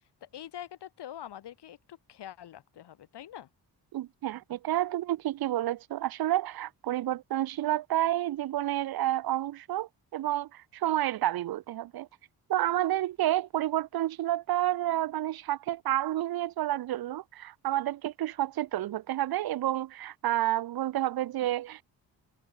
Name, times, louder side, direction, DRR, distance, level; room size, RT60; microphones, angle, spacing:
voice 1, 0.2-3.5, left 11 dB, 80° left, 3.7 m, -44 dB
voice 2, 3.9-12.1 12.5-21.8, right 13 dB, 65° right, 0.7 m, -30 dB
cardioid pair, 105°, 40 cm